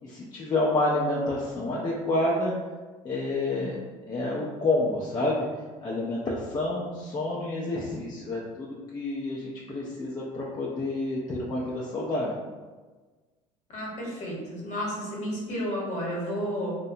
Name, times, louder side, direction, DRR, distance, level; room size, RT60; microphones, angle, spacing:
voice 1, 0.0-2.6 3.0-3.8 4.1-5.5 5.8-8.7 8.9-12.3, left 2 dB, 20° left, -5 dB, 0.5 m, -28 dB
voice 2, 13.7-16.8, equal, 45° left, -4 dB, 1.1 m, -32 dB
2.6 x 2.1 x 2.6 m, 1.3 s
hypercardioid pair, 70°, 18 cm